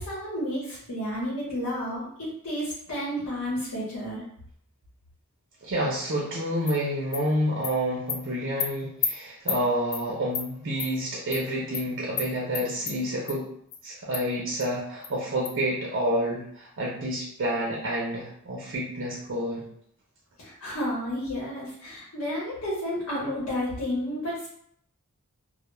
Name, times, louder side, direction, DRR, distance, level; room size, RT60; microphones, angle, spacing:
voice 1, 0.0-4.2 20.4-24.5, equal, 85° left, -7 dB, 0.9 m, -31 dB
voice 2, 5.6-13.5 13.8-19.6, equal, 55° right, -3 dB, 0.5 m, -29 dB
Animal, 6.7-6.8 7.1-7.2 7.6-7.7 8.1-8.2 8.6-8.7 9.0-9.1 9.5-9.6 9.9-10.0 10.3-10.5 10.8-10.9 11.3-11.4 11.7-11.8 12.2-12.3 12.5-12.9 13.3-13.4 13.7-13.8 14.1-14.2 14.6-14.7 15.0-15.1 15.4-15.5, left 6 dB, 50° left, 0.3 m, -30 dB
2.2 x 2.0 x 3.0 m, 0.67 s
head